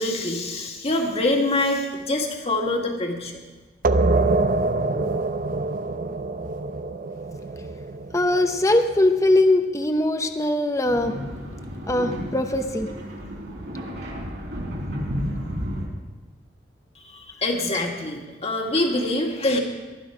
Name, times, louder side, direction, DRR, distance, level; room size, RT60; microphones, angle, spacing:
voice 1, 0.0-3.3 17.1-19.6, left 2 dB, 35° left, 2 dB, 2.1 m, -25 dB
sound 1, 3.8-9.2, right 3 dB, 50° right, 0.7 m, -25 dB
voice 2, 8.1-11.1 11.9-12.9, left 1 dB, 20° left, 6 dB, 0.8 m, -21 dB
sound 2, 10.8-15.9, equal, 70° right, 3.8 m, -32 dB
19.0 x 12.5 x 5.0 m, 1.3 s
head